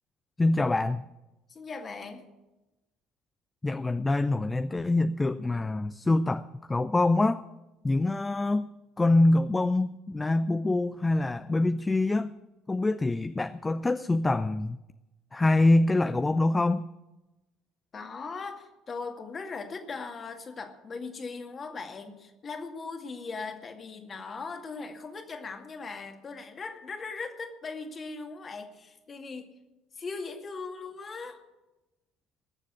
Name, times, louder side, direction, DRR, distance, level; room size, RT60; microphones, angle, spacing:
voice 1, 0.4-1.0 3.6-7.4 7.8-8.7 9.0-12.3 12.7-14.8 15.3-16.9, left 2 dB, 15° left, 13 dB, 0.5 m, -25 dB
voice 2, 1.5-2.3 17.9-29.5 29.9-31.4, left 4 dB, 35° left, 5 dB, 2.1 m, -39 dB
20.0 x 7.4 x 8.4 m, 1.0 s
figure-of-eight pair, 55°, 0 cm